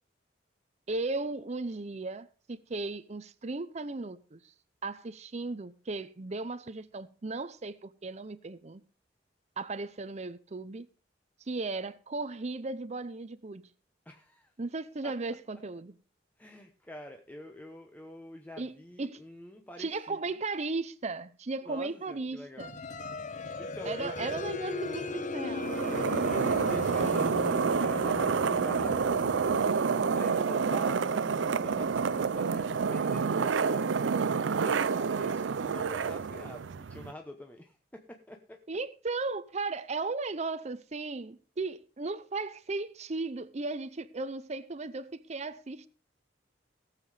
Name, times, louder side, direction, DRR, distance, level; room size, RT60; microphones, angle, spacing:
voice 1, 0.9-4.5 4.8-8.8 9.6-10.9 11.4-13.6 14.6-15.9 18.6-19.2 19.8-22.8 23.9-25.8 38.7-45.9, right 3 dB, 35° right, 0.6 m, -36 dB
voice 2, 14.0-14.5 15.0-15.1 16.4-20.2 21.6-22.7 23.6-24.3 25.9-29.5 30.1-38.6, left 1 dB, 10° left, 0.9 m, -46 dB
sound 1, 22.6-35.1, left 2 dB, 45° left, 1.0 m, -39 dB
sound 2, 25.6-37.1, right 5 dB, 85° right, 0.5 m, -28 dB
18.0 x 7.5 x 4.9 m
head